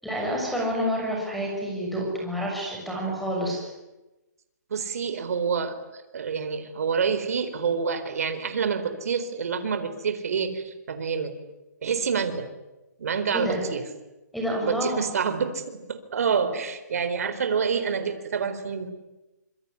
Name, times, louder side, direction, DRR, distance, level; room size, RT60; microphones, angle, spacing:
voice 1, 0.0-3.7 13.3-13.6 14.3-15.0, equal, ahead, -1 dB, 6.5 m, -28 dB
voice 2, 4.7-5.8 6.1-11.3 11.8-12.4 13.0-13.8 14.6-15.6 15.9-18.9, right 6 dB, 55° right, 9 dB, 4.2 m, -27 dB
25.5 x 23.0 x 9.8 m, 1.0 s
hypercardioid pair, 170°, 10 cm